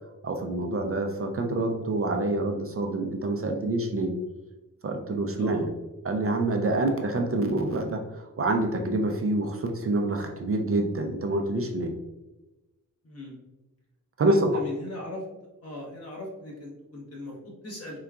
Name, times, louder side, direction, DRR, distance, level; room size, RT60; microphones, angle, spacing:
voice 1, 0.2-4.1 4.8-5.7 6.0-11.9 14.2-14.6, right 2 dB, 45° right, 3 dB, 0.4 m, -27 dB
voice 2, 5.3-5.7 13.0-13.4 14.3-15.2 15.6-18.0, left 1 dB, 50° left, -2 dB, 1.0 m, -39 dB
3.8 x 2.3 x 2.3 m, 1.0 s
wide cardioid pair, 100°, 33 cm